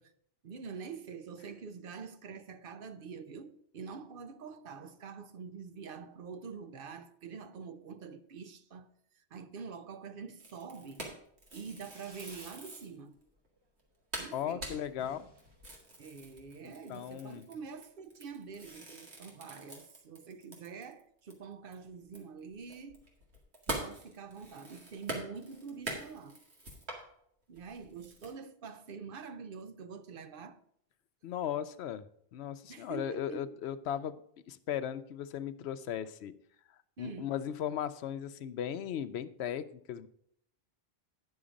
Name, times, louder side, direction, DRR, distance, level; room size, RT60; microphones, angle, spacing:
voice 1, 0.4-11.1 11.5-13.3 14.2-14.8 16.0-23.1 23.7-26.4 27.5-30.6 32.7-33.5 37.0-37.3, right 5 dB, 60° right, 0.8 m, -46 dB
sound 1, 10.4-12.9 13.5-13.6 13.8-13.9 14.1-21.0 21.3-21.4 21.7-27.0 27.6-28.3, right 2 dB, 85° right, 2.3 m, -44 dB
Fireworks, 11.7-12.7 13.0-13.6 13.8-13.9 14.2-14.3 14.5-14.6 14.9-16.5, right 1 dB, 25° right, 1.2 m, -57 dB
voice 2, 14.3-15.3 16.6-17.4 31.2-32.0 32.3-34.1 34.5-36.3 37.0-40.1, left 9 dB, 85° left, 0.9 m, -37 dB
9.9 x 6.4 x 5.0 m
omnidirectional pair, 1.1 m